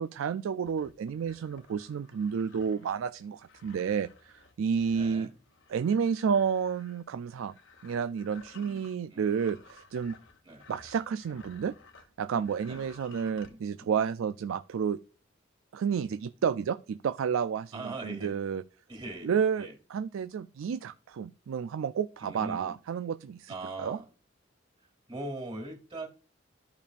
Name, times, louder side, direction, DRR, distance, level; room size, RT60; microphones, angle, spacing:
voice 1, 0.0-5.3 5.7-7.5 7.8-10.2 10.7-11.7 12.2-15.0 15.7-17.7 18.0-18.6 19.2-23.5 23.8-24.0, right 7 dB, 80° right, 0.3 m, -31 dB
sound 1, 0.6-12.1 12.4-13.5, left 4 dB, 65° left, 1.2 m, -56 dB
voice 2, 4.9-5.3 8.5-8.8 9.1-9.3 10.4-10.7 12.7-12.9 13.3-13.9 17.7-18.3 18.9-19.7 22.2-22.7 23.5-24.1 25.1-26.1, right 2 dB, 25° right, 2.4 m, -41 dB
13.5 x 5.3 x 2.5 m
head